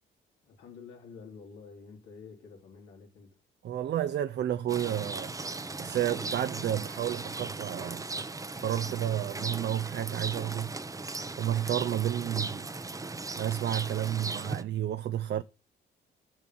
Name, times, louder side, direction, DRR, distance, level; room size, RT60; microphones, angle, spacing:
voice 1, 0.4-3.4, left 5 dB, 90° left, 3.3 m, -49 dB
voice 2, 3.6-8.1 8.6-10.7 11.4-12.7 13.4-15.4, right 11 dB, 60° right, 0.6 m, -31 dB
Rain, 4.7-14.6, right 3 dB, 15° right, 0.7 m, -37 dB
7.1 x 6.1 x 7.6 m
cardioid pair, 90°, 20 cm